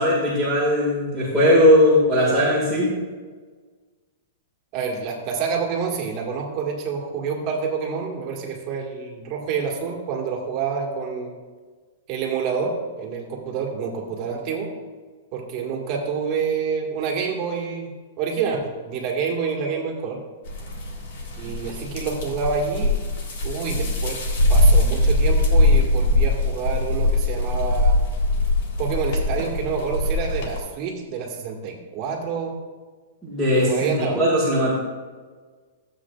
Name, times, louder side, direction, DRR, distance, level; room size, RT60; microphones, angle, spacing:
voice 1, 0.0-2.9 33.2-34.7, left 1 dB, 5° left, -8 dB, 2.0 m, -18 dB
voice 2, 4.7-11.4 12.1-14.7 15.3-17.9 18.2-20.2 21.4-22.9 23.4-24.2 24.5-27.9 28.8-32.6 33.5-34.2, right 5 dB, 35° right, 0 dB, 1.7 m, -27 dB
sound 1, 20.5-30.6, left 1 dB, 55° left, 1.7 m, -21 dB
13.0 x 7.8 x 2.4 m, 1.4 s
hypercardioid pair, 160°, 0 cm